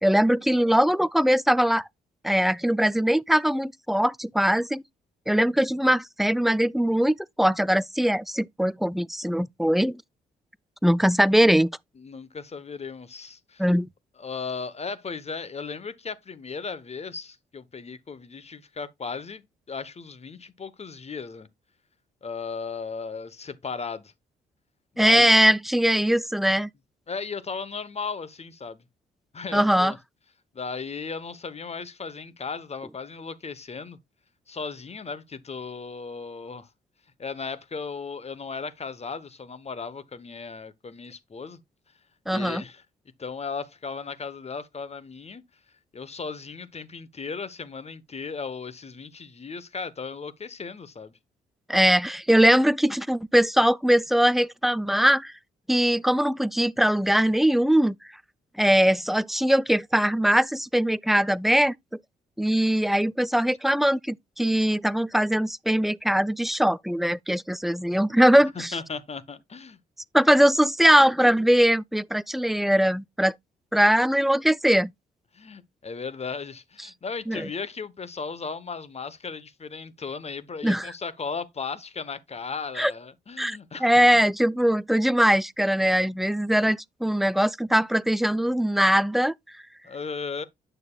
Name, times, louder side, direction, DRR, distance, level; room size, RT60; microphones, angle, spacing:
voice 1, 0.0-1.9 2.2-4.8 5.3-10.0 10.8-11.7 13.6-13.9 25.0-26.7 29.5-29.9 42.3-42.6 51.7-55.3 55.7-58.0 58.6-61.7 62.4-68.7 70.1-73.3 73.7-74.9 77.3-77.5 80.6-80.9 82.8-82.9 83.4-89.3, equal, ahead, 0.3 m, -21 dB
voice 2, 12.0-13.6 14.2-21.5 22.2-24.1 24.9-25.3 27.1-28.8 29.3-30.0 30.5-34.0 34.5-36.7 37.2-41.6 42.3-42.8 43.2-45.4 45.9-51.1 68.5-69.8 75.3-83.9 89.8-90.5, left 5 dB, 35° left, 1.0 m, -36 dB
9.0 x 6.4 x 2.3 m
hypercardioid pair, 50°, 20 cm